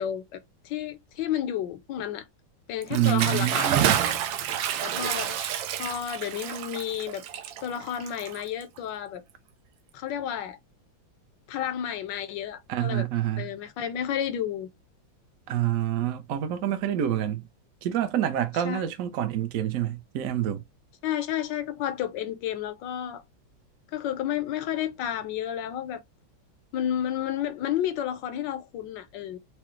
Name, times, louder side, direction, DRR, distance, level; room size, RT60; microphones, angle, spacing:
voice 1, 0.0-2.2 2.7-3.8 4.8-5.5 5.8-7.2 7.6-9.2 9.9-10.6 11.5-13.1 13.4-14.7 18.5-18.8 21.0-23.2 23.9-26.0 26.7-29.4, left 10 dB, 75° left, 1.2 m, -31 dB
Bathtub (filling or washing) / Splash splatter, 2.8-8.8, right 9 dB, 80° right, 1.3 m, -29 dB
voice 2, 2.9-4.0 12.7-13.5 15.5-17.5 17.8-20.6, right 11 dB, 65° right, 0.9 m, -27 dB
4.8 x 2.0 x 3.0 m
omnidirectional pair, 2.1 m